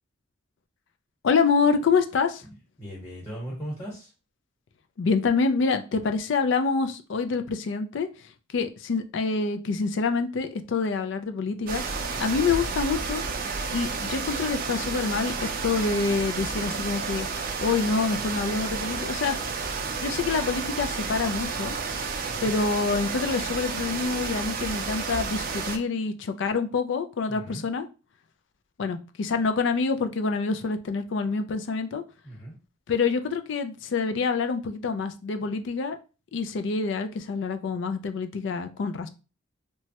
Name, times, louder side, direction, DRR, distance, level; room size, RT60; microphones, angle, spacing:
voice 1, 1.2-2.4 5.0-8.1 8.5-11.8 12.2-13.2 13.7-15.3 15.6-17.3 17.6-19.4 20.0-21.8 22.4-27.8 28.8-32.0 32.9-36.0 36.3-39.1, left 4 dB, 60° left, 8 dB, 0.4 m, -26 dB
voice 2, 2.8-4.1 27.3-27.6 32.2-32.5, equal, 20° left, -3 dB, 1.1 m, -38 dB
sound 1, 11.7-25.8, right 4 dB, 45° right, 0.4 m, -31 dB
3.0 x 2.2 x 2.8 m, 0.33 s
head